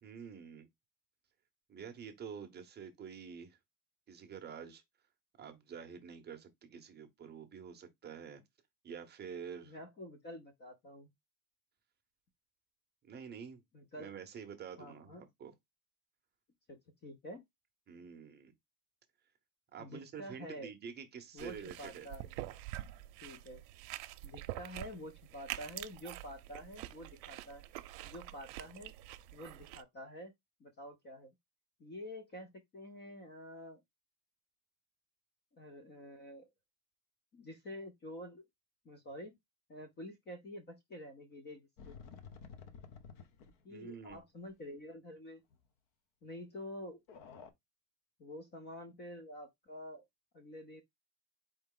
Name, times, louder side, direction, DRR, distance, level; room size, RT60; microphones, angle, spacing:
voice 1, 0.0-0.7 1.7-3.6 4.1-4.8 5.4-8.4 8.8-9.8 13.0-13.6 13.9-15.5 17.9-18.5 19.7-22.1 43.7-44.2, right 7 dB, 20° right, 0.7 m, -48 dB
voice 2, 9.6-11.1 13.7-14.1 14.8-15.3 16.7-17.4 19.8-20.7 21.3-22.3 23.2-23.6 24.2-27.6 28.0-28.9 29.3-30.3 30.6-31.3 31.8-33.8 35.5-36.5 37.3-38.4 38.8-39.4 39.7-42.0 43.6-45.4 46.2-47.0 48.2-50.0 50.3-50.8, left 1 dB, 25° left, 0.4 m, -48 dB
sound 1, 21.4-29.8, right 16 dB, 75° right, 0.7 m, -46 dB
sound 2, 41.8-43.7 44.1-44.2 44.5-44.6 45.5-45.6 47.1-47.5, left 6 dB, 55° left, 1.0 m, -52 dB
4.5 x 3.2 x 3.6 m
cardioid pair, 160°, 48 cm